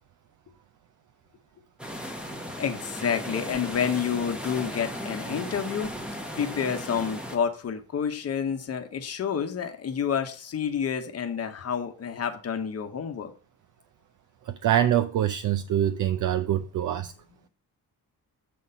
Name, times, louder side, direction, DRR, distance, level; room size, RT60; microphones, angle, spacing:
sound 1, 1.8-7.4, equal, 5° right, 0.9 m, -36 dB
voice 1, 2.6-5.9 6.3-13.3 16.9-17.1, left 7 dB, 40° left, 1.0 m, -29 dB
voice 2, 14.5-17.1, right 11 dB, 55° right, 0.5 m, -25 dB
7.4 x 4.2 x 5.4 m
cardioid pair, 160°, 37 cm